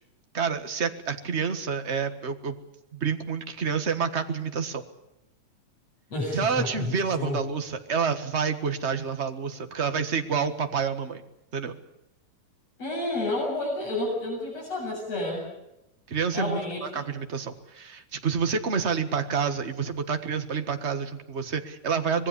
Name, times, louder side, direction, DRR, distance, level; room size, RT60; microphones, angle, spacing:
voice 1, 0.3-2.6 2.9-4.8 6.3-11.2 11.5-11.7 16.1-22.3, right 6 dB, 35° right, 7 dB, 1.1 m, -28 dB
voice 2, 6.1-7.4 12.8-15.4 16.3-17.1, left 2 dB, 55° left, -2 dB, 8.9 m, -30 dB
26.0 x 20.5 x 7.0 m, 0.86 s
omnidirectional pair, 3.5 m